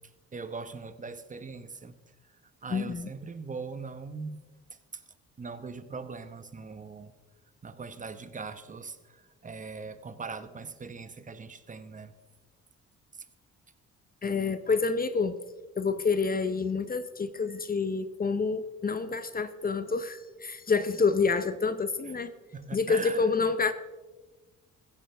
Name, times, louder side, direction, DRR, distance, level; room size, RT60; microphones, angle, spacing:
voice 1, 0.3-1.9 2.6-4.4 4.9-5.0 5.4-7.1 7.6-12.1 22.5-23.3, right 4 dB, 25° right, 11 dB, 1.1 m, -40 dB
voice 2, 2.7-3.1 14.2-15.4 15.8-22.3 22.7-23.7, left 4 dB, 30° left, 12 dB, 0.8 m, -28 dB
15.5 x 15.0 x 3.5 m, 1.2 s
cardioid pair, 90°, 30 cm